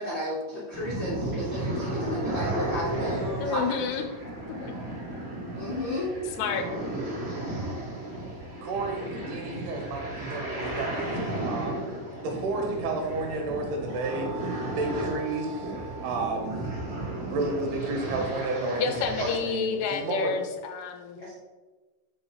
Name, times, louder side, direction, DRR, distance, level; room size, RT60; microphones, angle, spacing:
voice 1, 0.0-3.8 5.5-6.1 21.2-21.3, left 1 dB, 70° left, -8 dB, 1.1 m, -33 dB
sound 1, 0.7-19.4, right 1 dB, 50° right, 1.6 m, -34 dB
voice 2, 3.4-4.1 4.6-4.7 6.4-6.6 18.8-21.2, left 6 dB, 85° left, 6 dB, 2.5 m, -29 dB
voice 3, 8.6-11.8 12.2-14.3 14.8-15.7 16.0-16.5 17.3-20.3, right 2 dB, 75° right, 2 dB, 3.1 m, -31 dB
sound 2, 13.8-17.1, right 7 dB, 90° right, 2.8 m, -44 dB
6.2 x 4.7 x 4.7 m, 1.3 s
omnidirectional pair, 4.9 m